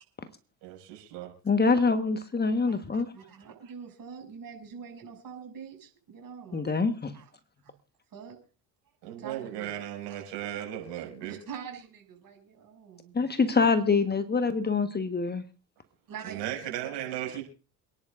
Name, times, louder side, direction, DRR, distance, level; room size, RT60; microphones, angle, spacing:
voice 1, 0.6-1.3 9.0-11.3 16.2-17.4, right 12 dB, 65° right, 6.1 m, -36 dB
voice 2, 1.4-3.1 6.5-7.1 13.1-15.4, left 4 dB, 20° left, 1.3 m, -25 dB
voice 3, 2.6-6.7 7.1-7.3 7.6-7.7 8.1-8.4 9.2-9.8 11.3-13.1 16.1-17.4, right 7 dB, 45° right, 6.5 m, -45 dB
27.0 x 10.5 x 2.5 m
hypercardioid pair, 65°, 46 cm